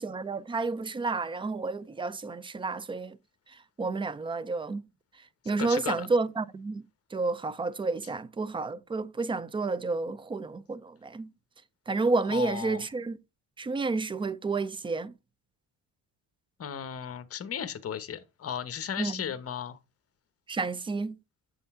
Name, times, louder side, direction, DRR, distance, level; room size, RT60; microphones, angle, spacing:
voice 1, 0.0-3.2 3.8-4.9 5.5-6.8 7.1-11.3 11.9-13.2 13.6-15.1 19.0-19.2 20.5-21.2, right 3 dB, 15° right, 0.3 m, -30 dB
voice 2, 5.6-6.1 12.3-12.8 16.6-19.8, left 8 dB, 40° left, 1.0 m, -35 dB
7.9 x 5.3 x 3.6 m
cardioid pair, 110°, 37 cm